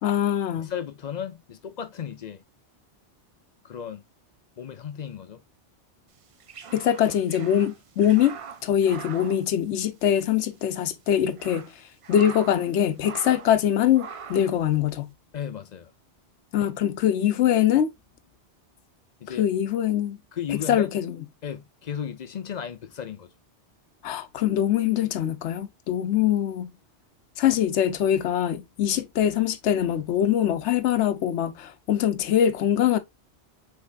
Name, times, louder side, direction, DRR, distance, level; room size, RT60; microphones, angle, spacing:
voice 1, 0.0-0.7 6.7-11.7 12.1-15.1 16.5-17.9 19.4-20.2 20.5-21.2 24.0-26.7 27.4-33.0, left 10 dB, 85° left, 0.9 m, -23 dB
voice 2, 0.6-2.4 3.6-4.0 4.6-5.4 15.3-15.9 19.2-19.4 20.3-20.9 21.4-23.3, left 8 dB, 50° left, 0.5 m, -35 dB
sound 1, 6.2-10.3 10.5-10.6 11.1-12.7 13.0-13.6 13.9-14.6, right 6 dB, 60° right, 0.3 m, -42 dB
5.6 x 3.4 x 2.4 m
omnidirectional pair, 1.2 m